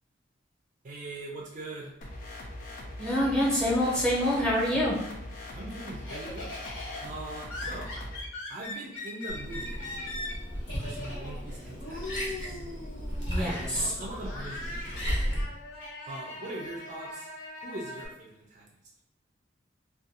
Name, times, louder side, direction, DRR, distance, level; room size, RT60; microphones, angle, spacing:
voice 1, 0.8-1.9 5.5-6.5 7.0-7.9 8.5-9.9 10.8-12.6 13.3-15.2 16.1-17.3 17.6-18.7, right 2 dB, 40° right, -1 dB, 0.4 m, -41 dB
sound 1, 2.0-8.2, left 1 dB, 45° left, 0.4 m, -41 dB
Laughter, 2.7-4.8 5.2-18.1, left 2 dB, 85° left, 1.1 m, -41 dB
voice 2, 3.0-5.0 13.3-13.9, equal, 5° left, -6 dB, 0.8 m, -26 dB
Liquid, 9.3-15.4, equal, 60° left, 0.9 m, -35 dB
2.5 x 2.2 x 2.7 m, 0.80 s
head